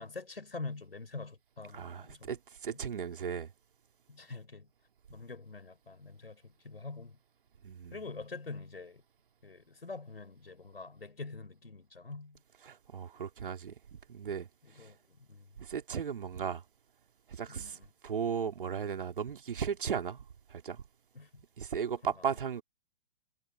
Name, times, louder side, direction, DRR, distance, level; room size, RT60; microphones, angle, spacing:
voice 1, 0.0-2.4 2.7-2.8 4.1-4.7 5.1-7.2 7.9-9.0 9.4-12.4 14.6-15.5 17.5-17.9 21.1-21.4 22.0-22.1, left 3 dB, 80° left, 6.7 m, -45 dB
voice 2, 1.7-3.5 7.6-7.9 12.6-13.7 14.1-14.5 14.8-14.9 15.6-16.6 17.3-20.8 21.6-22.6, right 7 dB, 65° right, 2.5 m, -36 dB
figure-of-eight pair, 120°, 29 cm